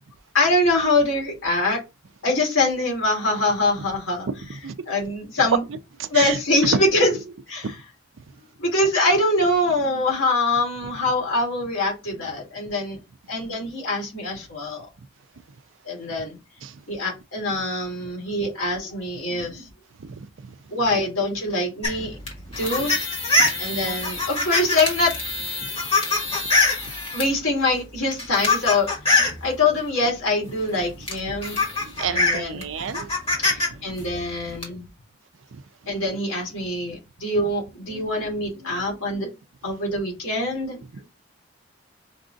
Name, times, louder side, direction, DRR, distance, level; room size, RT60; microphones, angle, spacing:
voice 1, 0.3-1.8 2.2-4.3 4.9-5.6 6.1-7.1 7.5-7.7 8.6-13.0 13.3-14.9 15.8-16.4 16.9-19.7 20.7-22.2 22.6-23.0 23.6-25.1 27.1-31.6 32.1-32.6 33.5-34.9 35.9-39.3 39.6-40.8, left 2 dB, 75° left, 2.4 m, -24 dB
voice 2, 6.0-6.4 6.6-6.8 7.6-7.7 16.6-16.8 20.0-20.6 22.7-22.9 23.4-23.5 23.8-24.0 25.6-25.7 31.8-33.1 33.5-33.6 35.5-35.6 40.9-41.1, right 5 dB, 70° right, 0.5 m, -30 dB
sound 1, 21.8-27.3 28.0-29.4 30.6-30.7 31.1-33.7 34.0-34.6, left 3 dB, 30° left, 1.4 m, -23 dB
5.2 x 2.5 x 3.9 m
head